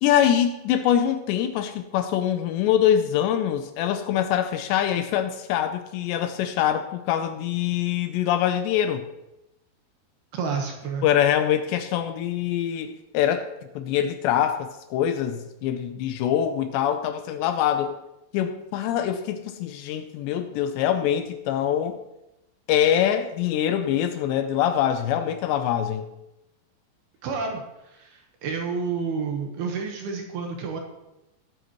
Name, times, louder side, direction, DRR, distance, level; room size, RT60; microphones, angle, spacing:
voice 1, 0.0-9.1 11.0-13.5 13.8-18.0 18.3-22.0 22.7-26.1, left 10 dB, 80° left, 8 dB, 2.7 m, -24 dB
voice 2, 10.3-11.1 27.2-30.8, right 5 dB, 70° right, 2 dB, 2.9 m, -30 dB
19.5 x 8.3 x 3.1 m, 0.92 s
omnidirectional pair, 5.3 m